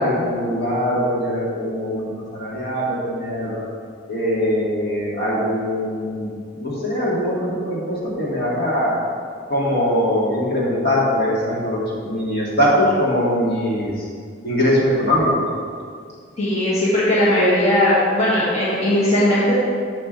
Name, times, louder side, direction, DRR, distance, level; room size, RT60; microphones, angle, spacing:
voice 1, 0.0-3.6 4.1-9.0 9.5-14.1 14.4-15.4, equal, 50° left, -6 dB, 2.2 m, -21 dB
voice 2, 16.4-19.6, left 1 dB, 35° left, -9 dB, 1.9 m, -18 dB
11.0 x 7.2 x 3.3 m, 2.2 s
head